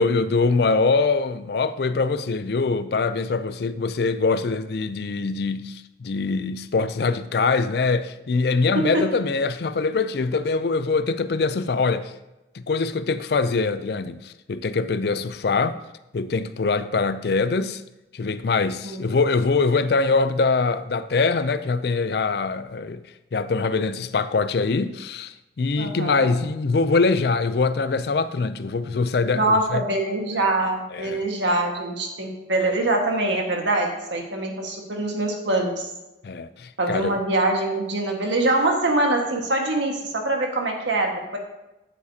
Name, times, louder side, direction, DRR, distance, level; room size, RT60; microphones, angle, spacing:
voice 1, 0.0-12.1 12.5-15.8 16.1-17.8 18.1-23.0 23.3-29.8 30.9-31.2 36.2-37.2, left 4 dB, 60° left, 0.4 m, -23 dB
voice 2, 8.7-9.1 18.8-19.1 25.8-26.3 29.3-35.9 36.8-41.4, right 2 dB, 80° right, 1.6 m, -24 dB
13.0 x 7.2 x 2.8 m
head